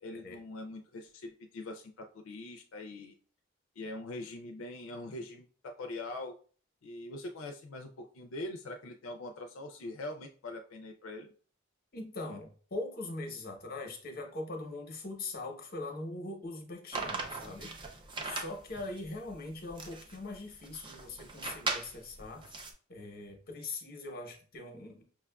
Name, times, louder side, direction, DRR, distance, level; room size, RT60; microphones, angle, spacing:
voice 1, 0.0-3.2 3.8-6.4 6.8-11.3, left 2 dB, 85° left, 4 dB, 0.4 m, -43 dB
voice 2, 11.9-22.4 22.9-25.0, left 2 dB, 50° left, 3 dB, 0.9 m, -41 dB
sound 1, 16.9-22.7, right 3 dB, 25° right, 0.5 m, -39 dB
5.7 x 2.3 x 2.2 m, 0.43 s
head